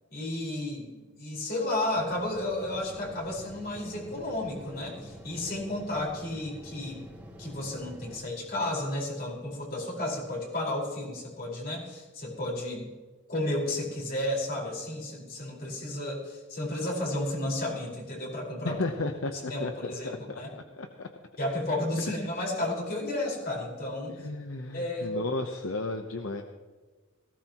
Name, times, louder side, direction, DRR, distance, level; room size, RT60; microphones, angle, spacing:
voice 1, 0.1-7.1 7.4-12.9 13.3-18.8 19.5-20.5 21.4-24.3 24.7-25.2, left 1 dB, 50° left, -2 dB, 4.9 m, -32 dB
sound 1, 1.9-8.2, equal, 5° right, 2.9 m, -47 dB
voice 2, 18.6-21.1 24.1-26.4, left 2 dB, 70° left, 5 dB, 0.9 m, -34 dB
18.5 x 17.0 x 3.0 m, 1.3 s
head